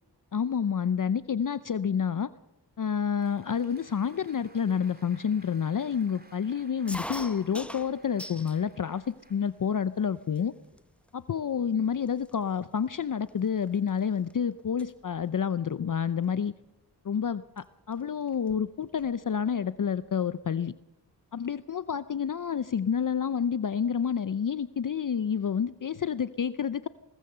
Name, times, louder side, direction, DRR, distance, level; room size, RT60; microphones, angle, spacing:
voice 1, 0.3-2.3 2.8-10.5 11.1-16.5 17.1-17.4 17.9-20.7 21.3-26.9, left 7 dB, 50° left, 15 dB, 0.6 m, -29 dB
Applause, 2.9-10.0, right 1 dB, 20° right, 3.1 m, -58 dB
sound 1, 6.9-8.6 9.0-9.7 10.4-10.5 10.7-11.1 11.7-11.8 12.1-14.3 14.6-14.9 16.2-16.5 17.6-17.7 17.9-18.0 18.3-19.2, equal, 5° left, 1.0 m, -42 dB
21.0 x 18.5 x 6.8 m, 0.92 s
cardioid pair, 60°, 43 cm